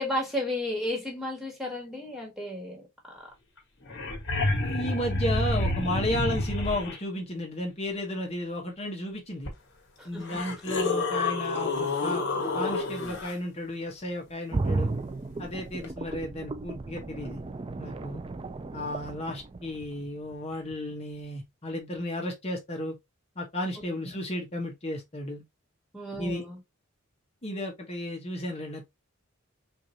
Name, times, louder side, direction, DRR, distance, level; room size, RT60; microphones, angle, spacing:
voice 1, 0.0-2.8 10.0-10.4 25.9-26.6, left 1 dB, ahead, 1.6 m, -33 dB
sound 1, 3.6-3.7 3.8-7.0 9.5-9.6 10.2-13.3 15.8-15.9, left 2 dB, 55° left, 1.5 m, -29 dB
voice 2, 4.6-9.5 10.0-12.3 12.5-14.9 15.4-17.4 17.8-18.2 18.7-22.9 23.4-25.4 26.2-26.4 27.4-28.9, left 1 dB, 30° left, 1.0 m, -33 dB
sound 2, 14.5-20.3 20.7-20.8, right 3 dB, 25° right, 0.4 m, -34 dB
4.7 x 2.6 x 2.7 m
head